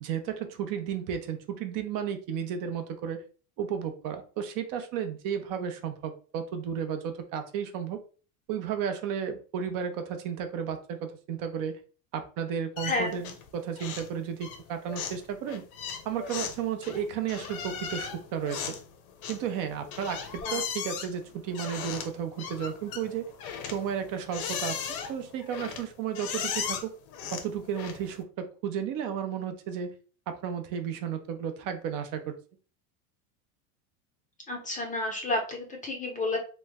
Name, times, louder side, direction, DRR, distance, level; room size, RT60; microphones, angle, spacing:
voice 1, 0.0-3.2 3.6-8.0 8.5-11.8 12.1-15.6 16.0-18.8 19.3-23.3 23.6-24.8 25.1-26.9 27.3-29.9 30.3-32.4, right 8 dB, 50° right, 7 dB, 0.6 m, -33 dB
sound 1, 12.8-13.5 13.8-14.1 14.4-28.2, left 7 dB, 85° left, 0.8 m, -37 dB
voice 2, 12.8-13.2 20.4-20.6 34.5-36.4, left 2 dB, 20° left, 2 dB, 0.5 m, -31 dB
3.0 x 2.1 x 3.4 m, 0.38 s
supercardioid pair, 130°, 43 cm